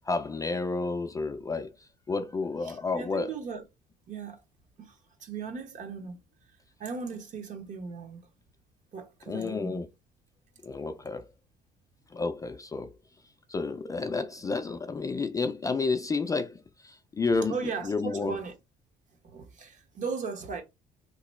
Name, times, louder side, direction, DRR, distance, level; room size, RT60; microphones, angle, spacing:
voice 1, 0.0-1.7 2.1-3.3 9.3-9.9 10.6-11.3 12.1-12.9 13.5-17.6 17.8-18.4, left 4 dB, 20° left, 0.3 m, -30 dB
voice 2, 2.7-3.6 4.1-4.4 4.8-6.2 6.8-8.2 8.9-9.8 17.5-18.6 19.2-20.6, right 5 dB, 50° right, 0.9 m, -37 dB
2.9 x 2.2 x 4.1 m
cardioid pair, 110°, 17 cm